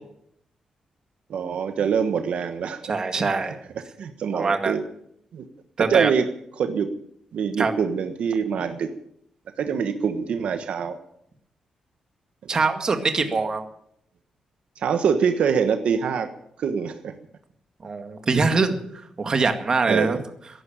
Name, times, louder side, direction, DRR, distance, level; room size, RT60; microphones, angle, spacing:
voice 1, 1.3-2.9 3.8-4.8 5.3-5.5 5.8-6.3 6.6-6.9 7.3-8.9 9.6-11.0 14.8-16.3 16.6-17.1 18.3-18.4 19.9-20.2, right 6 dB, 70° right, 8 dB, 1.3 m, -24 dB
voice 2, 2.9-3.6 4.3-4.7 5.8-6.1 7.6-7.7 12.5-13.6 17.8-18.8 19.2-20.2, right 4 dB, 35° right, 7 dB, 2.0 m, -23 dB
14.5 x 11.0 x 8.8 m, 0.72 s
wide cardioid pair, 135°, 2 cm